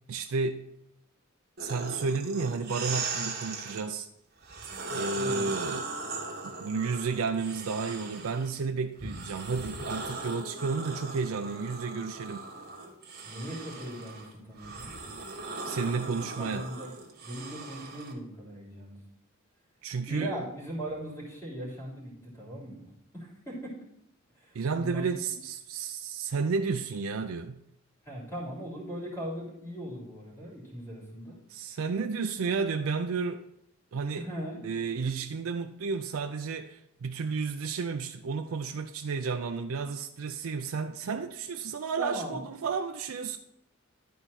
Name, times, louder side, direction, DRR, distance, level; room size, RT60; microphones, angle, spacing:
voice 1, 0.1-0.7 1.6-4.1 4.9-5.9 6.4-12.4 15.6-16.7 19.8-20.4 24.5-27.6 31.5-33.4 33.9-34.3 34.6-43.4, right 5 dB, 75° right, 0.5 m, -32 dB
sound 1, 1.6-3.8 4.4-8.5 9.0-18.1, right 3 dB, 50° right, 1.7 m, -39 dB
voice 2, 5.2-5.5 13.2-14.9 16.2-17.0 17.2-19.0 20.1-22.9 23.1-23.8 24.4-25.1 28.0-31.4 31.7-31.8 34.2-34.6 42.0-42.4, equal, 15° left, 3.1 m, -39 dB
12.0 x 4.5 x 4.2 m
head